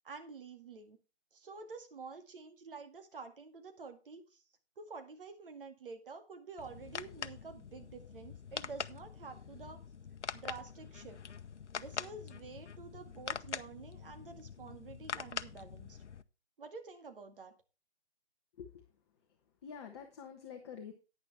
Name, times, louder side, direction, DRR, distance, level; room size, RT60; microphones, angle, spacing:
voice 1, 0.0-1.0 1.3-4.4 4.8-9.8 10.3-11.2 11.8-16.0 16.6-17.5, right 4 dB, 50° right, 6 dB, 2.1 m, -49 dB
sound 1, 6.6-16.2, left 6 dB, 85° left, 0.8 m, -44 dB
voice 2, 19.6-20.9, left 7 dB, 25° left, 3 dB, 1.2 m, -47 dB
11.0 x 9.6 x 3.4 m, 0.31 s
figure-of-eight pair, 155°, 34 cm